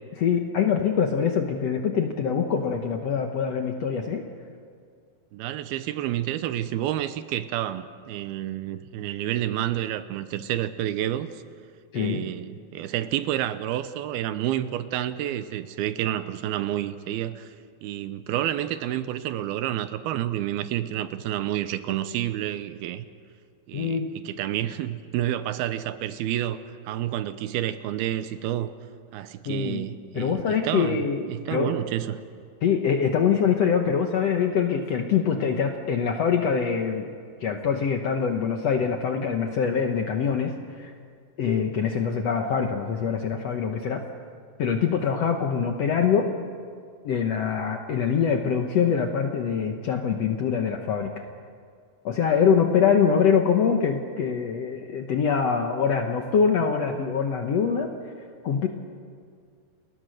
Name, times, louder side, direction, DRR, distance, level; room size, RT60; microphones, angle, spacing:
voice 1, 0.2-4.2 11.9-12.3 23.7-24.1 29.4-29.9 30.1-31.8 32.6-37.1 37.4-40.9 41.4-44.0 44.6-46.4 47.0-51.1 52.0-57.9 58.4-58.7, left 6 dB, 65° left, 4 dB, 1.6 m, -24 dB
voice 2, 5.3-11.3 12.0-17.5 17.8-23.1 23.7-28.7 29.1-32.2, right 12 dB, 90° right, 12 dB, 2.7 m, -29 dB
29.5 x 21.0 x 6.5 m, 2.1 s
omnidirectional pair, 4.4 m